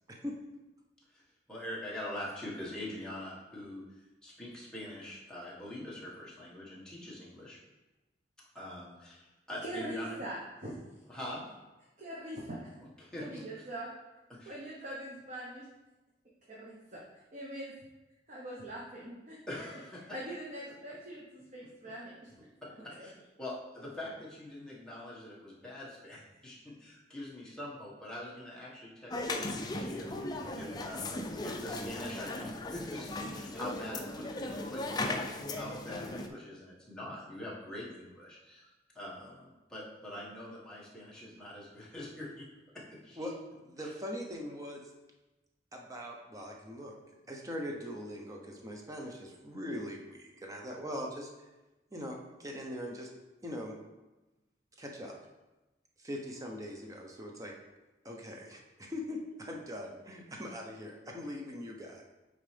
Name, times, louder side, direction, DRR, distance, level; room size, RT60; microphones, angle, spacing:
voice 1, 1.5-3.8 4.2-7.6 8.5-10.2 11.1-11.4 13.0-13.4 14.3-14.6 19.5-20.1 22.6-22.7 23.0-23.1 23.4-30.1 30.5-33.1 33.3-35.2 35.5-38.7 39.0-42.5 42.7-43.3 43.8-43.9, left 1 dB, 5° left, -7 dB, 1.7 m, -44 dB
voice 2, 9.6-10.8 12.0-12.6 13.2-13.9 14.5-15.7 16.5-17.0 17.3-17.7 18.3-19.4 20.1-22.5, right 1 dB, 45° right, -5 dB, 1.0 m, -42 dB
sound 1, 29.1-36.3, left 2 dB, 25° left, 0.5 m, -37 dB
voice 3, 43.6-44.8 45.7-47.0 47.3-51.3 51.9-53.1 53.4-53.8 54.8-55.1 56.0-57.5 58.0-62.0, equal, 20° right, 0 dB, 0.8 m, -41 dB
9.1 x 4.0 x 3.4 m, 1.1 s
head